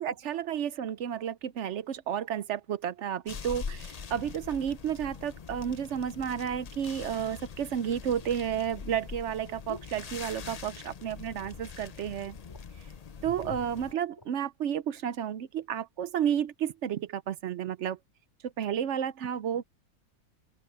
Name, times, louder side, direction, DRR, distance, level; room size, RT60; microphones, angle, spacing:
voice 1, 0.0-12.4 13.2-18.0 18.4-19.6, right 9 dB, 60° right, 0.8 m, -32 dB
sound 1, 3.3-13.9, left 6 dB, 45° left, 0.5 m, -43 dB
sound 2, 9.7-10.7 11.0-11.5 11.8-11.9 12.2-12.9 13.6-14.4 15.0-15.2, left 2 dB, 15° left, 3.6 m, -53 dB
open air
omnidirectional pair, 1.6 m